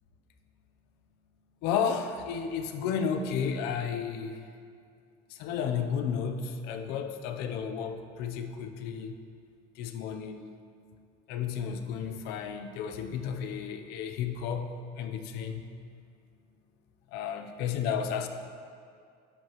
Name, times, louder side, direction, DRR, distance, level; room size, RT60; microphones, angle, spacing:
voice 1, 1.6-4.4 5.3-9.1 9.8-10.5 11.3-15.6 17.1-18.3, left 7 dB, 85° left, 7 dB, 0.7 m, -32 dB
11.0 x 8.1 x 3.1 m, 2.3 s
cardioid pair, 145°, 16 cm